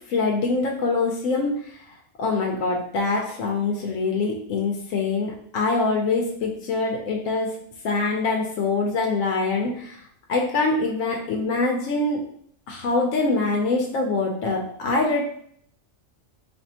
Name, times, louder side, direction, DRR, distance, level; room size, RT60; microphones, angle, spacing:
voice 1, 0.1-1.5 2.2-7.5 7.8-10.0 10.3-12.2 12.7-15.2, left 3 dB, 80° left, 0 dB, 1.0 m, -24 dB
4.3 x 2.6 x 2.7 m, 0.64 s
omnidirectional pair, 1.4 m